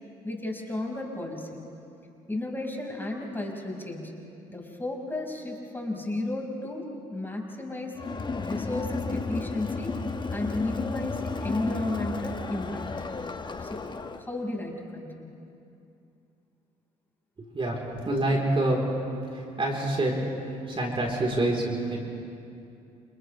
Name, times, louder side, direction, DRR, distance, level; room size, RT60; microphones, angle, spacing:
voice 1, 0.2-1.6 2.3-4.1 4.5-6.8 7.1-9.9 10.3-12.8 13.6-13.9 14.1-15.3, left 2 dB, 15° left, -1 dB, 5.7 m, -33 dB
Crowd, 8.0-14.3, left 4 dB, 30° left, 1.4 m, -33 dB
voice 2, 17.4-17.8 18.0-18.8 19.3-20.1 20.7-22.0, right 1 dB, 35° right, -2 dB, 4.2 m, -26 dB
29.5 x 28.5 x 3.5 m, 2.6 s
hypercardioid pair, 60°, 17 cm